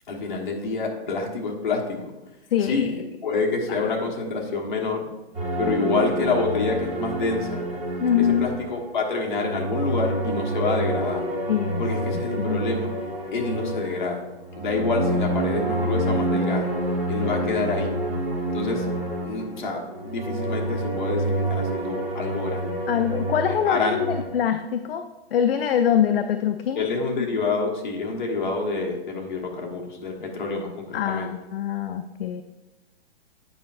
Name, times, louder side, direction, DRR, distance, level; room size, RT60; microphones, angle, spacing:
voice 1, 0.1-2.1 2.6-3.0 3.2-5.1 5.6-7.7 8.3-11.3 11.8-12.9 13.3-14.2 14.6-16.7 17.1-18.0 18.5-18.9 19.2-22.7 23.5-24.0 26.7-31.3, left 3 dB, 50° left, 0 dB, 1.3 m, -27 dB
voice 2, 2.5-2.9 3.7-3.9 8.0-8.5 11.5-11.9 12.1-12.6 22.9-25.0 25.3-26.8 30.9-32.4, left 9 dB, 65° left, 8 dB, 0.4 m, -24 dB
sound 1, 5.3-8.9 9.2-24.2, right 1 dB, 5° right, 1.2 m, -28 dB
8.5 x 5.2 x 2.5 m, 1.0 s
hypercardioid pair, 175°, 32 cm